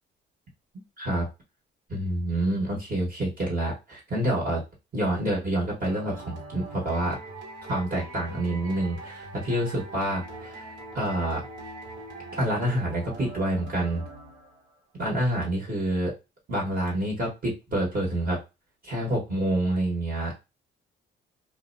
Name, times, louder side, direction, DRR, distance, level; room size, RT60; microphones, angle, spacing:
voice 1, 1.9-4.6 4.9-7.2 7.7-10.6 10.9-11.4 12.4-14.0 15.0-16.1 16.5-18.4 18.8-20.3, right 1 dB, 45° right, -3 dB, 1.3 m, -27 dB
sound 1, 5.8-14.7, right 2 dB, 65° right, 1.2 m, -42 dB
2.4 x 2.2 x 2.5 m, 0.25 s
cardioid pair, 90°, 20 cm